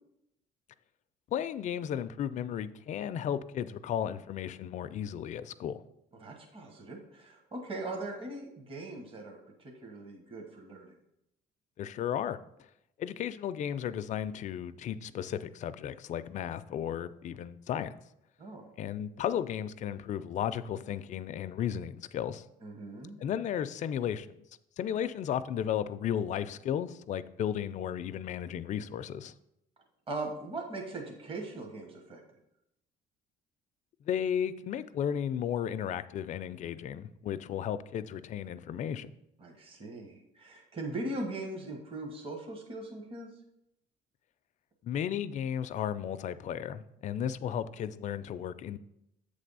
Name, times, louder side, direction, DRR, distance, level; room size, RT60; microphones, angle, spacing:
voice 1, 1.3-5.8 11.8-12.4 13.0-17.9 18.8-22.5 23.2-24.3 24.8-29.3 34.0-39.1 44.8-48.8, left 9 dB, 45° left, 12 dB, 0.4 m, -34 dB
voice 2, 6.2-10.9 18.4-18.7 22.6-23.2 30.1-32.2 39.4-43.3, right 2 dB, 35° right, 2 dB, 1.1 m, -40 dB
7.9 x 3.3 x 5.4 m, 0.82 s
cardioid pair, 110°, 17 cm